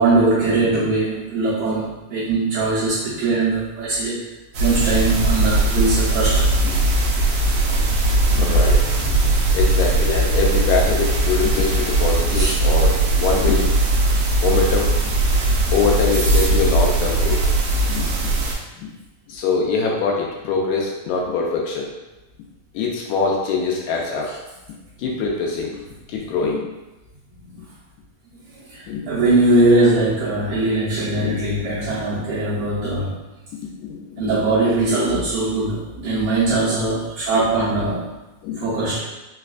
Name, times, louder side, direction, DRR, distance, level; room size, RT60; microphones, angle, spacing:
voice 1, 0.0-4.2 4.5-6.5 12.3-12.5 24.2-24.3 28.7-33.2 34.2-38.1 38.6-39.0, right 2 dB, 75° right, -11 dB, 1.4 m, -20 dB
sound 1, 4.5-18.5, right 2 dB, 90° right, 1.3 m, -19 dB
voice 2, 8.3-8.8 9.5-13.8 14.4-14.9 15.7-17.4 17.9-18.3 18.7-18.9 19.3-21.9 22.7-24.3 25.0-25.8 26.1-26.7 28.9-29.1 30.5-30.6 31.2-31.4 33.8-34.5 38.4-38.6, left 4 dB, 80° left, -2 dB, 1.9 m, -23 dB
4.8 x 2.2 x 2.4 m, 1.0 s
omnidirectional pair, 3.5 m